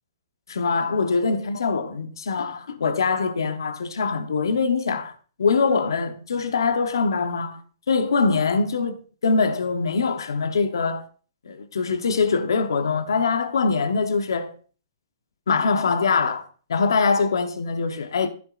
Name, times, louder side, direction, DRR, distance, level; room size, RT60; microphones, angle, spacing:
voice 1, 0.5-5.1 5.4-7.6 7.9-11.0 11.5-14.5 15.5-18.3, left 4 dB, 85° left, 0.9 m, -23 dB
14.5 x 6.0 x 2.5 m
hypercardioid pair, 140°, 2 cm